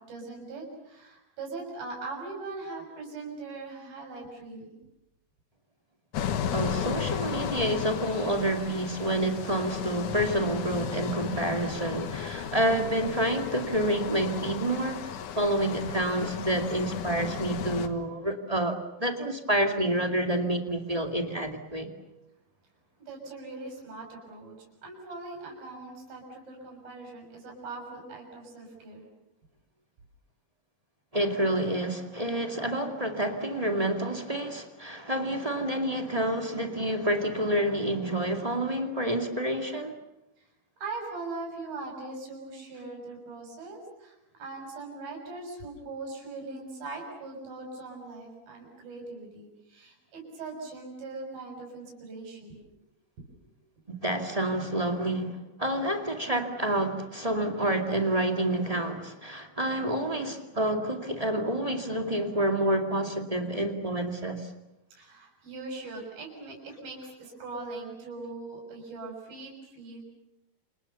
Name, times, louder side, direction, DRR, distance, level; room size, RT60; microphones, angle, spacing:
voice 1, 0.1-4.8 23.0-24.5 24.8-29.1 40.4-40.5 40.8-52.6 53.2-53.5 65.0-70.0, right 3 dB, 75° right, 0 dB, 8.3 m, -41 dB
sound 1, 6.1-17.9, left 8 dB, 60° left, 2.7 m, -34 dB
voice 2, 6.5-15.0 15.3-21.9 31.1-39.9 53.9-64.5, right 1 dB, 15° right, 4 dB, 1.4 m, -28 dB
28.5 x 28.0 x 7.0 m, 0.90 s
omnidirectional pair, 4.3 m